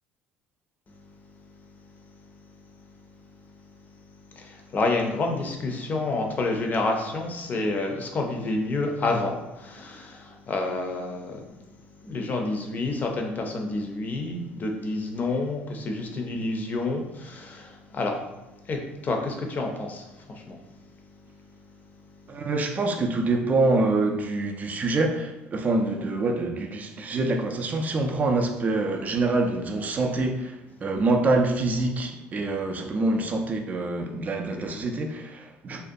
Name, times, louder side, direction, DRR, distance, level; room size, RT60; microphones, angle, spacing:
voice 1, 4.3-11.5 12.0-18.2 18.7-20.6, left 2 dB, 35° left, 0.5 m, -29 dB
voice 2, 22.3-30.6 30.8-35.8, right 2 dB, 35° right, 0.4 m, -25 dB
2.5 x 2.2 x 2.5 m
supercardioid pair, 90°, 5 cm